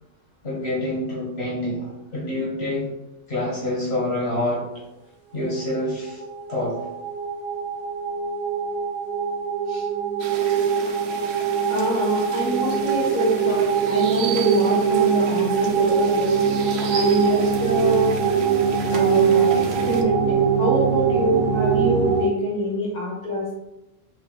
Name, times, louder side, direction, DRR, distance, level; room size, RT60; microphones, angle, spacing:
voice 1, 0.4-2.9 3.3-4.7 5.3-6.2 6.5-6.8 10.6-10.8 19.7-19.8, left 1 dB, 55° left, -5 dB, 1.6 m, -27 dB
sound 1, 5.9-22.2, right 6 dB, 20° right, 1.3 m, -22 dB
sound 2, 10.2-20.0, right 5 dB, 65° right, 0.8 m, -36 dB
voice 2, 11.7-16.4 16.9-18.2 18.9-23.5, equal, 35° left, -4 dB, 1.4 m, -25 dB
6.5 x 3.4 x 2.3 m, 0.90 s
omnidirectional pair, 1.3 m